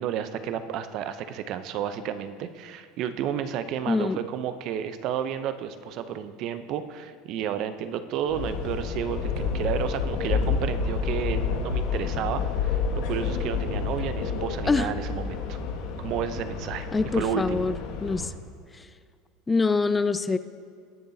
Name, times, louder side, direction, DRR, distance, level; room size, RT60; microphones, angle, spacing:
voice 1, 0.0-15.6 16.0-16.9 17.1-17.6, right 9 dB, 55° right, 11 dB, 0.7 m, -31 dB
voice 2, 3.9-4.2 14.7-14.9 16.9-18.3 18.7-18.9 19.5-20.4, left 4 dB, 15° left, 13 dB, 0.4 m, -25 dB
sound 1, 8.3-18.3, left 5 dB, 70° left, 1.4 m, -29 dB
20.0 x 6.9 x 2.8 m, 2.2 s
hypercardioid pair, 95°, 0 cm